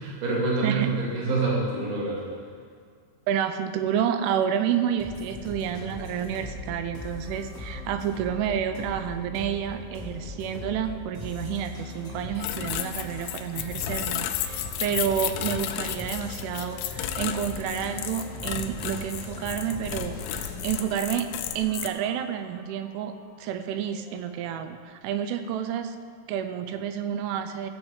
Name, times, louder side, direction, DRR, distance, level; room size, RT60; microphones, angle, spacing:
voice 1, 0.0-2.2, right 3 dB, 45° right, -5 dB, 3.4 m, -26 dB
voice 2, 3.3-21.3 21.6-26.0 26.3-27.7, right 9 dB, 85° right, 8 dB, 3.0 m, -29 dB
sound 1, 5.0-24.7, left 2 dB, ahead, 1.0 m, -40 dB
sound 2, 12.4-21.9, left 11 dB, 85° left, 2.9 m, -33 dB
15.5 x 7.3 x 4.8 m, 2.2 s
omnidirectional pair, 5.7 m